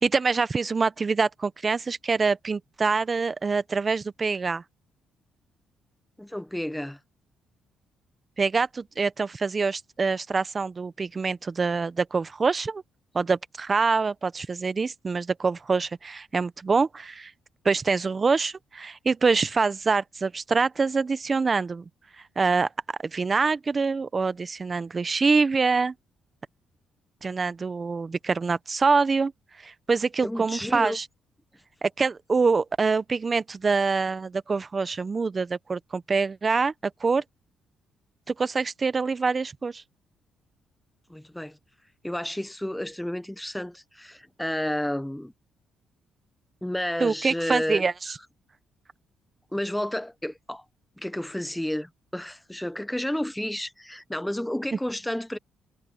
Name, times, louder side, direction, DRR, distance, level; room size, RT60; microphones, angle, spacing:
voice 1, 0.0-4.6 8.4-12.8 13.1-17.3 17.6-21.8 22.4-22.7 23.0-25.9 27.2-29.3 29.6-31.0 31.8-37.2 38.3-39.8 47.0-48.2, right 4 dB, 35° right, 0.9 m, -25 dB
voice 2, 6.2-7.0 30.2-31.0 41.1-41.6 42.0-45.3 46.6-47.8 49.5-50.6 51.0-55.4, left 1 dB, 5° left, 1.3 m, -31 dB
cardioid pair, 90°, 0 cm